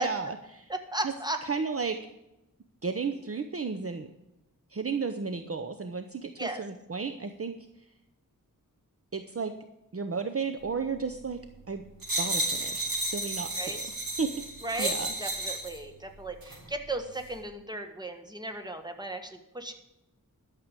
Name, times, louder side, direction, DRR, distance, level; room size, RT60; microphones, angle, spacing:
voice 1, 0.0-0.7 1.4-2.0 2.8-4.1 4.7-7.5 9.1-9.5 9.9-11.4 11.7-11.8 12.2-13.8 14.2-14.3 14.8-15.1, right 5 dB, 40° right, 8 dB, 0.8 m, -33 dB
voice 2, 0.7-1.4 6.4-6.6 13.6-13.8 14.6-14.9 15.2-19.7, right 2 dB, 10° right, 6 dB, 1.6 m, -35 dB
sound 1, 12.0-15.8 16.4-16.6, right 1 dB, 75° right, 4.3 m, -32 dB
12.0 x 6.8 x 7.5 m, 0.88 s
wide cardioid pair, 75°, 34 cm